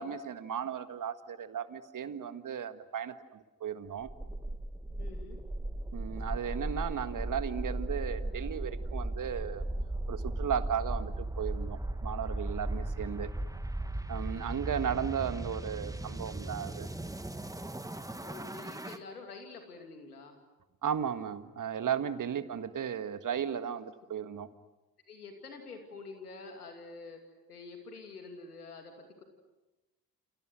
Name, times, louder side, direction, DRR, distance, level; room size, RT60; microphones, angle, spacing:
voice 1, 0.0-4.1 5.9-9.7 10.1-13.3 14.1-16.9 20.8-24.5, right 8 dB, 45° right, 11 dB, 1.7 m, -35 dB
sound 1, 4.1-19.0, right 1 dB, 10° right, 1.6 m, -37 dB
voice 2, 5.0-5.4 18.2-20.4 22.3-22.5 25.1-27.2 27.5-29.2, left 4 dB, 90° left, 5 dB, 2.7 m, -47 dB
29.0 x 29.0 x 6.2 m, 1.1 s
figure-of-eight pair, 45°, 44 cm